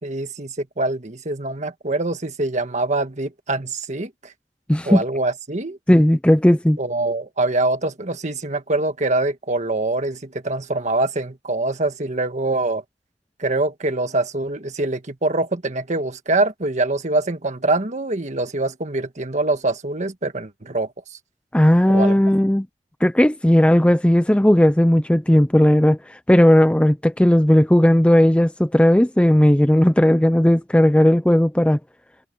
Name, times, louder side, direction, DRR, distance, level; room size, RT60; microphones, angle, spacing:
voice 1, 0.0-4.1 4.8-5.8 6.8-12.8 13.4-20.9 21.9-22.2, right 2 dB, 40° right, 1.7 m, -24 dB
voice 2, 4.7-5.0 5.9-6.8 21.5-22.7 23.0-31.8, equal, 5° left, 0.5 m, -15 dB
head